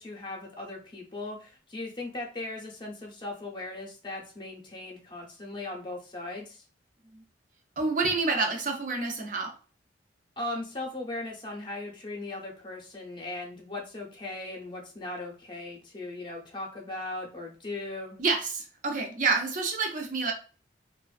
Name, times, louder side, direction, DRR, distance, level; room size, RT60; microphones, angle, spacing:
voice 1, 0.0-6.6 10.4-18.2, left 2 dB, 25° left, 0 dB, 0.6 m, -38 dB
voice 2, 7.8-9.5 18.2-20.3, right 4 dB, 45° right, 2 dB, 0.5 m, -28 dB
2.4 x 2.2 x 2.3 m, 0.37 s
head